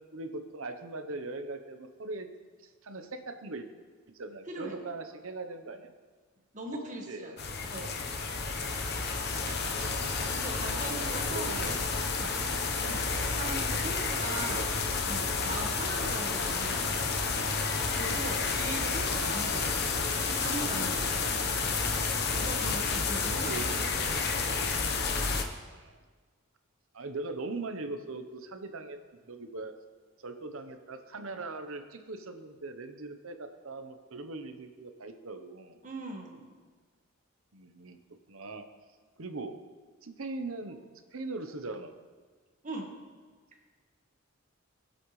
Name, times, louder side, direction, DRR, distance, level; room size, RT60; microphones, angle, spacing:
voice 1, 0.1-2.3 2.8-3.7 4.1-5.9 7.1-7.3 9.3-10.2 11.3-11.8 12.3-13.0 14.2-14.8 23.1-24.3 25.3-26.0 26.9-29.0 29.3-29.7 30.2-35.8 37.5-38.0 38.3-38.6 39.2-39.5 40.0-40.8 41.1-42.0, right 3 dB, 75° right, 7 dB, 0.9 m, -41 dB
voice 2, 4.5-4.8 6.5-8.0 10.3-11.6 12.2-12.4 12.8-14.7 15.1-16.9 17.9-21.4 21.9-23.9 35.8-36.5 42.6-43.0, right 2 dB, 35° right, 1 dB, 1.6 m, -40 dB
sound 1, 7.4-25.4, left 4 dB, 50° left, 1.0 m, -30 dB
21.0 x 7.9 x 3.2 m, 1.5 s
head